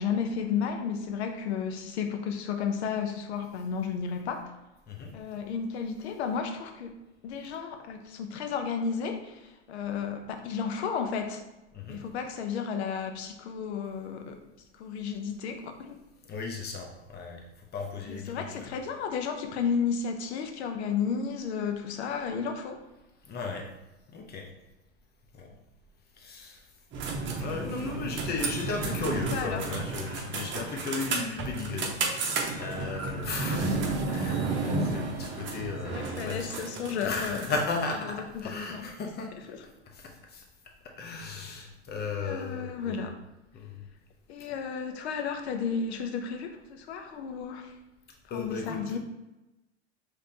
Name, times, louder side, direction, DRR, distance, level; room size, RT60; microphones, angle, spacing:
voice 1, 0.0-4.5 5.1-7.0 7.2-11.4 11.9-14.4 14.8-16.0 18.1-22.8 28.8-29.6 35.8-37.5 38.0-38.2 38.4-38.9 39.5-39.6 42.0-43.1 44.3-47.7 48.3-49.0, left 6 dB, 70° left, 6 dB, 0.7 m, -33 dB
voice 2, 16.3-17.4 17.7-18.8 23.3-23.6 24.1-24.5 25.3-25.5 26.2-26.7 27.4-36.6 37.0-39.3 39.9-40.4 40.8-43.1 43.5-43.8 48.3-48.8, left 4 dB, 30° left, 1 dB, 1.0 m, -35 dB
sound 1, 26.9-37.8, right 3 dB, 35° right, 0.9 m, -32 dB
5.0 x 3.3 x 2.8 m, 1.0 s
hypercardioid pair, 90°, 34 cm